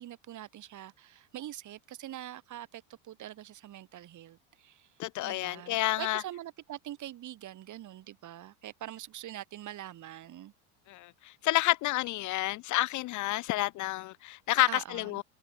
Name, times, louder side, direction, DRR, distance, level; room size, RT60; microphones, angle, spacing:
voice 1, 0.0-4.9 5.2-10.5 14.7-15.2, right 12 dB, 40° right, 3.3 m, -44 dB
voice 2, 5.0-6.2 10.9-15.2, left 17 dB, 45° left, 0.6 m, -29 dB
supercardioid pair, 125°, 44 cm